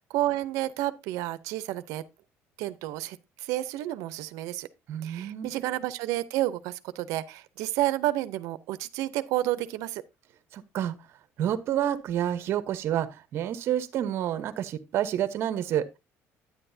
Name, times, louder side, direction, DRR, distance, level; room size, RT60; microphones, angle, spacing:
voice 1, 0.1-2.0 2.6-4.7 5.0-10.0, right 15 dB, 80° right, 0.7 m, -30 dB
voice 2, 4.9-5.5 10.5-10.9 11.4-15.8, right 10 dB, 50° right, 1.0 m, -29 dB
10.0 x 9.6 x 2.7 m
cardioid pair, 170°, 5 cm